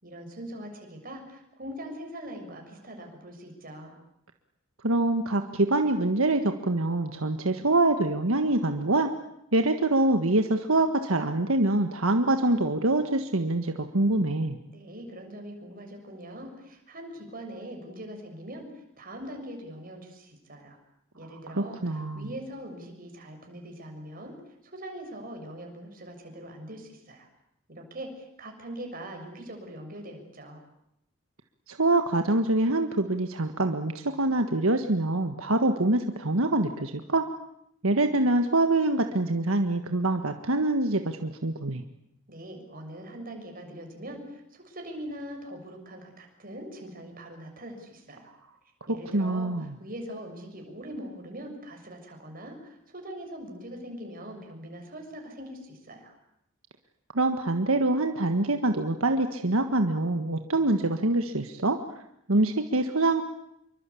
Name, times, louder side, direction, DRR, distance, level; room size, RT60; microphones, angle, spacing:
voice 1, 0.0-4.0 14.7-18.7 19.0-20.8 21.1-24.4 24.6-27.3 27.8-30.6 42.3-48.3 48.9-56.1, right 1 dB, 40° right, 3 dB, 6.9 m, -42 dB
voice 2, 4.8-9.1 9.5-14.6 21.6-22.3 31.7-37.3 37.8-41.8 49.1-49.7 57.1-61.8 62.3-63.2, right 2 dB, 80° right, 6 dB, 1.6 m, -25 dB
27.5 x 24.0 x 8.6 m, 0.79 s
head